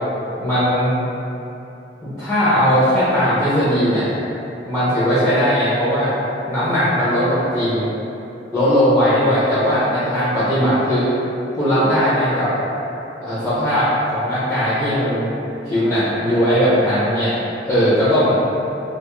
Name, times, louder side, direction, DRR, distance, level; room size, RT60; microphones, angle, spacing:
voice 1, 0.4-1.0 2.0-4.1 4.7-6.1 6.5-7.9 8.5-11.1 11.5-12.5 13.2-15.3 15.6-17.4 17.7-18.4, equal, 5° left, -12 dB, 0.5 m, -18 dB
2.5 x 2.3 x 2.9 m, 2.9 s
head